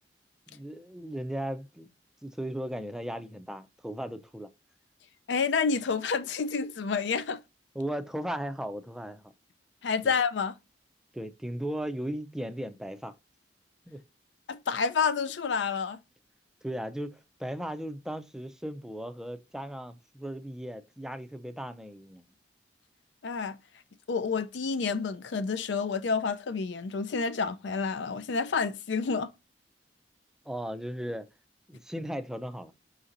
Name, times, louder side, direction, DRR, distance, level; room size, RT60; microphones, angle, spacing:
voice 1, 0.5-1.9 2.2-4.5 7.7-9.3 10.0-10.1 11.1-13.1 13.9-14.0 16.6-22.2 30.5-31.3 31.7-32.7, equal, 5° right, 0.4 m, -36 dB
voice 2, 5.3-7.4 9.8-10.6 14.5-16.0 23.2-23.6 24.1-29.3, left 5 dB, 80° left, 0.5 m, -29 dB
5.0 x 4.0 x 2.6 m
head